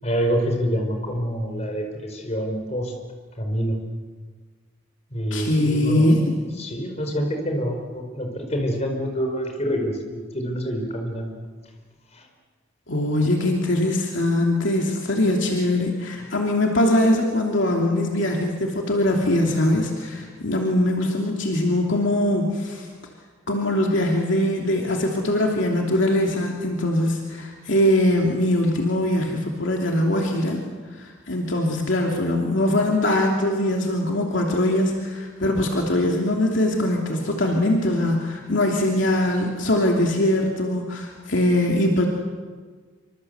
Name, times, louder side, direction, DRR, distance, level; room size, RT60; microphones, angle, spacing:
voice 1, 0.0-2.9 3.4-3.8 5.1-6.1 6.6-11.3 12.1-12.3, equal, 30° left, 3 dB, 4.9 m, -26 dB
voice 2, 5.3-6.6 12.9-22.9 23.5-30.6 31.0-42.1, left 1 dB, 60° left, 0 dB, 2.9 m, -22 dB
26.5 x 25.5 x 8.1 m, 1.5 s
head